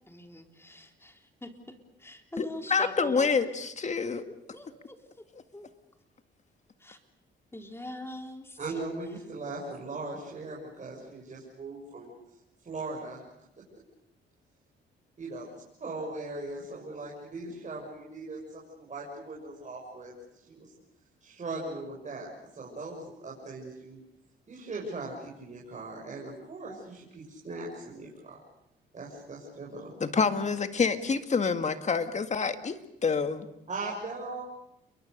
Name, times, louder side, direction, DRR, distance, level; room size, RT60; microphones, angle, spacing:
voice 1, 0.1-3.4 4.0-5.0 5.5-5.7 6.8-7.0 7.5-8.6, left 1 dB, 10° left, 4 dB, 3.6 m, -42 dB
voice 2, 2.4-4.2 30.0-33.5, left 5 dB, 35° left, 8 dB, 2.0 m, -27 dB
voice 3, 8.6-12.1 12.6-13.2 15.2-15.5 15.8-20.7 21.2-22.3 22.5-24.0 24.5-28.4 28.9-29.9 33.7-34.4, right 2 dB, 40° right, -3 dB, 6.6 m, -39 dB
29.5 x 23.0 x 6.7 m, 0.82 s
cardioid pair, 90°, 20 cm